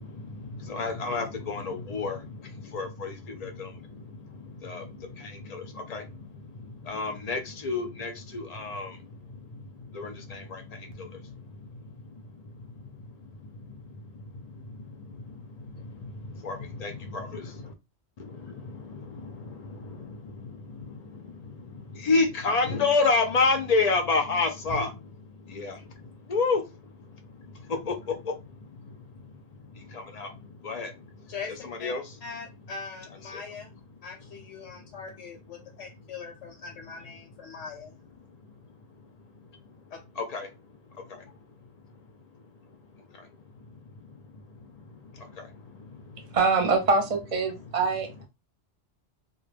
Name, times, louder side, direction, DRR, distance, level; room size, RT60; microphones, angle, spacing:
voice 1, 0.0-2.2 2.7-3.1 3.4-3.7 4.6-4.8 5.2-6.0 6.8-8.9 9.9-10.6 16.4-17.5 18.4-18.7 19.1-19.6 20.0-20.1 22.0-24.9 25.5-25.8 26.3-26.6 27.8-27.9 29.9-30.3 30.6-30.9 31.6-32.0 40.3-40.5, left 4 dB, 55° left, 0.4 m, -28 dB
voice 2, 32.2-33.7 34.0-37.9 39.9-40.0, left 5 dB, 85° left, 1.0 m, -41 dB
voice 3, 46.3-48.3, right 4 dB, 40° right, 0.7 m, -24 dB
2.2 x 2.2 x 3.2 m
omnidirectional pair, 1.2 m